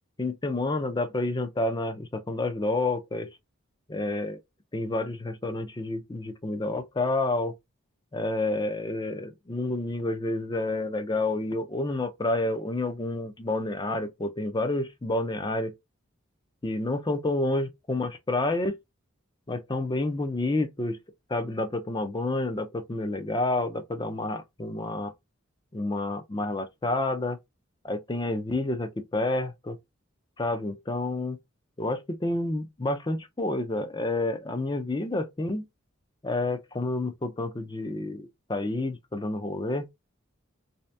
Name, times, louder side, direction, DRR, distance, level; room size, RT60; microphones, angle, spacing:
voice 1, 0.2-3.3 3.9-4.4 4.7-7.5 8.1-15.7 16.6-18.8 19.5-21.0 21.3-25.1 25.7-27.4 27.8-29.8 30.4-31.4 31.8-35.7 36.2-39.9, left 2 dB, 20° left, 0.5 m, -29 dB
3.3 x 2.8 x 3.3 m
head